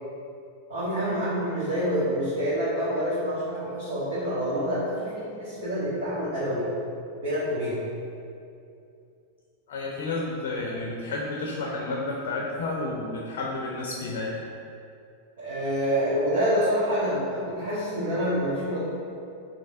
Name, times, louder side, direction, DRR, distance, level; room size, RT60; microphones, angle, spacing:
voice 1, 0.7-6.7 7.2-7.8 15.4-18.8, equal, 60° right, -12 dB, 1.2 m, -27 dB
voice 2, 9.7-14.4, left 2 dB, 55° left, -2 dB, 0.5 m, -31 dB
5.1 x 2.9 x 2.6 m, 2.5 s
figure-of-eight pair, 90°, 0 cm